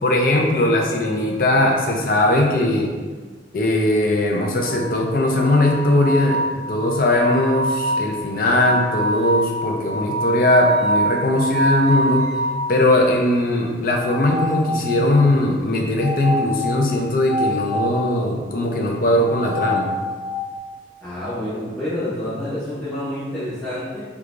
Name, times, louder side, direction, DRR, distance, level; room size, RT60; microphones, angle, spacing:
voice 1, 0.0-2.9 3.5-6.4 6.7-12.3 12.7-19.9, left 1 dB, 50° left, 0 dB, 0.5 m, -19 dB
sound 1, 4.6-12.7 14.0-15.2 16.0-18.0 19.2-20.5, right 1 dB, 70° right, 0.5 m, -25 dB
voice 2, 21.0-24.0, left 1 dB, ahead, -15 dB, 1.0 m, -28 dB
4.6 x 2.3 x 2.4 m, 1.4 s
head